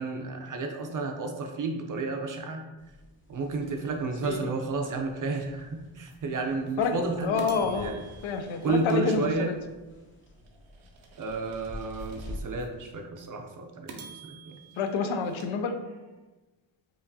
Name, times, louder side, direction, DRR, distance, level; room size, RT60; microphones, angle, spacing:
voice 1, 0.0-2.6 3.3-8.0 8.6-9.5 11.2-14.6, right 3 dB, 45° right, 3 dB, 0.5 m, -32 dB
sound 1, 2.8-12.4, left 1 dB, 25° left, 0.7 m, -46 dB
sound 2, 6.1-6.2 6.7-6.8 7.4-9.7 10.2-12.7 13.2-13.3 13.9-16.2, right 5 dB, 85° right, 0.7 m, -50 dB
voice 2, 7.2-7.9 8.2-9.6 14.8-15.7, left 5 dB, 75° left, 6 dB, 0.5 m, -28 dB
4.7 x 2.5 x 2.6 m, 1.1 s
cardioid pair, 115°, 47 cm